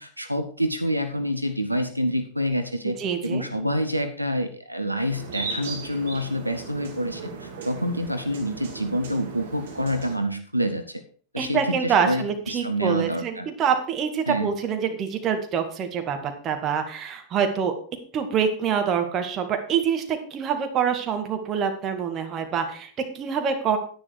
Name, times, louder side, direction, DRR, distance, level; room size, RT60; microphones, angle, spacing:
voice 1, 0.0-3.0 3.2-11.0 11.3-13.5 14.3-14.6, equal, 85° right, 8 dB, 0.9 m, -27 dB
voice 2, 3.0-3.5 11.4-17.7 18.1-23.8, right 7 dB, 30° right, 5 dB, 2.0 m, -25 dB
sound 1, 5.1-10.2, right 4 dB, 60° right, 2.4 m, -37 dB
10.5 x 9.6 x 4.7 m, 0.43 s
figure-of-eight pair, 90°, 0 cm